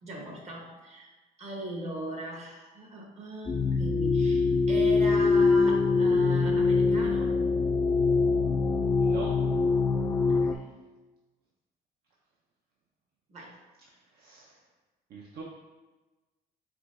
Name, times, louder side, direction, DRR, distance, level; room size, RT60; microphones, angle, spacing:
voice 1, 0.0-7.4 10.3-10.7 13.3-13.6, right 1 dB, 40° right, 0 dB, 1.0 m, -39 dB
sound 1, 3.5-10.5, left 4 dB, 20° left, 0.3 m, -24 dB
voice 2, 9.0-9.3 13.9-14.6 15.1-15.4, right 4 dB, 65° right, -2 dB, 0.6 m, -43 dB
4.8 x 3.5 x 2.5 m, 1.2 s
cardioid pair, 110°, 17 cm